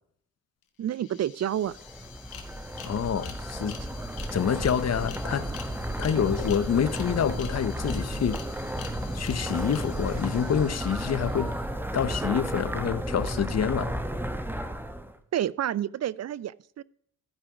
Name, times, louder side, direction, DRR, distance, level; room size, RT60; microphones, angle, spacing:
sound 1, 0.6-0.7 0.9-11.7, left 8 dB, 80° left, 1.4 m, -47 dB
voice 1, 0.8-1.8 15.3-16.8, right 11 dB, 50° right, 0.5 m, -29 dB
sound 2, 1.7-15.2, equal, 5° right, 1.1 m, -33 dB
voice 2, 2.8-3.8 4.3-5.5 6.0-8.4 9.1-11.5 11.9-13.9, left 8 dB, 45° left, 0.8 m, -27 dB
14.5 x 5.1 x 4.8 m
cardioid pair, 65°, 35 cm